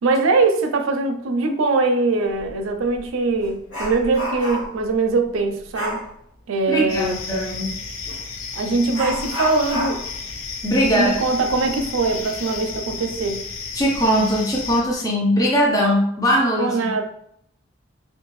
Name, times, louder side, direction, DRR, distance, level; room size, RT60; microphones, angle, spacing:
voice 1, 0.0-6.0 6.5-7.2 8.5-10.0 10.8-13.5 16.6-17.0, right 3 dB, 90° right, 5 dB, 0.4 m, -22 dB
Dog, 2.4-2.5 2.9-4.9 5.7-6.1 8.1-8.2 8.9-12.2 12.5-12.6 13.2-13.3 13.9-14.3 14.7-14.9, equal, 75° left, 1.1 m, -31 dB
voice 2, 6.7-7.8 10.6-11.1 13.7-16.9, equal, 15° left, -2 dB, 0.4 m, -20 dB
sound 1, 6.9-14.8, left 4 dB, 90° left, 0.4 m, -33 dB
2.7 x 2.3 x 3.0 m, 0.69 s
head